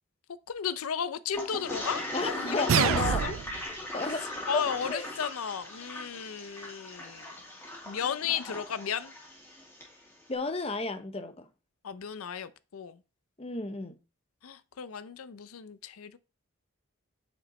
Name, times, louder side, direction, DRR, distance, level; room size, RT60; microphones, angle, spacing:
voice 1, 0.5-3.3 4.5-7.3 7.9-9.1 11.8-13.0 14.4-16.2, left 7 dB, 85° left, 0.5 m, -34 dB
Toilet flush, 1.3-9.9, left 1 dB, 10° left, 2.2 m, -39 dB
voice 2, 2.1-3.5 3.9-4.6 4.9-5.1 10.3-11.5 13.4-14.0, left 3 dB, 25° left, 0.7 m, -33 dB
sound 1, 2.7-3.7, right 8 dB, 75° right, 0.3 m, -26 dB
8.3 x 5.0 x 4.1 m
head